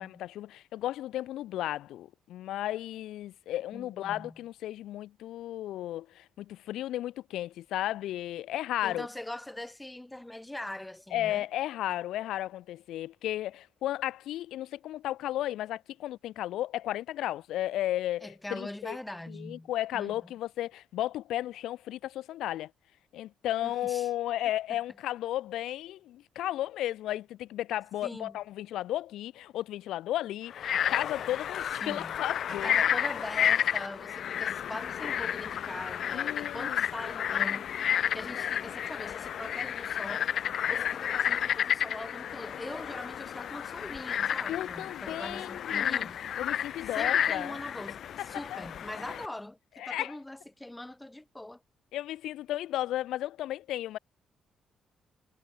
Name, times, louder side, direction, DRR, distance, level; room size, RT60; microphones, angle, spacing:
voice 1, 0.0-9.1 11.1-19.0 19.3-22.7 23.1-32.8 36.1-36.8 38.4-38.5 44.5-46.1 46.4-47.6 48.2-48.6 49.0-49.2 49.8-50.1 51.9-54.0, left 13 dB, 85° left, 5.5 m, -34 dB
voice 2, 3.7-4.4 8.8-11.5 18.2-20.2 23.6-24.1 28.0-28.4 31.8-32.2 32.5-37.7 38.1-40.3 40.7-46.2 47.0-51.6, left 1 dB, 10° left, 7.4 m, -42 dB
Frog, 30.5-49.3, left 9 dB, 65° left, 0.6 m, -31 dB
cardioid pair, 90°, 0 cm